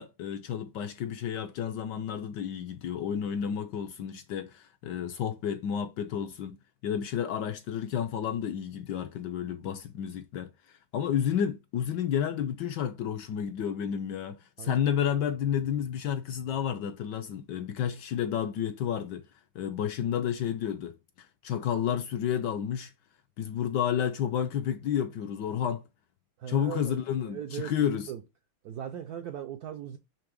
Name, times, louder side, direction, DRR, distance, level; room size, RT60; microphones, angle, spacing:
voice 1, 0.0-19.3 19.5-22.9 23.4-25.8 26.5-28.1, left 9 dB, 75° left, 1.0 m, -31 dB
voice 2, 26.4-27.0 27.2-28.2 28.6-30.0, right 10 dB, 75° right, 0.8 m, -38 dB
5.8 x 3.3 x 5.1 m
omnidirectional pair, 2.2 m